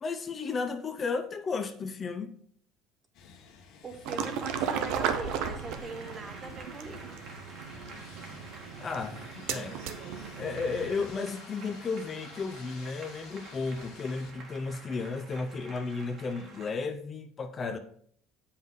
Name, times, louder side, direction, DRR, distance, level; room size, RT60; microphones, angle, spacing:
voice 1, 0.0-2.3 8.8-9.8 10.4-17.8, left 4 dB, 25° left, 0.5 m, -34 dB
sound 1, 3.1-14.3, left 5 dB, 60° left, 1.2 m, -53 dB
voice 2, 3.8-7.2, right 3 dB, 25° right, 0.7 m, -41 dB
sound 2, 4.1-11.1, right 7 dB, 75° right, 0.7 m, -36 dB
Applause, 4.4-16.7, right 3 dB, 45° right, 1.6 m, -49 dB
7.7 x 5.5 x 3.7 m
cardioid pair, 145°, 0 cm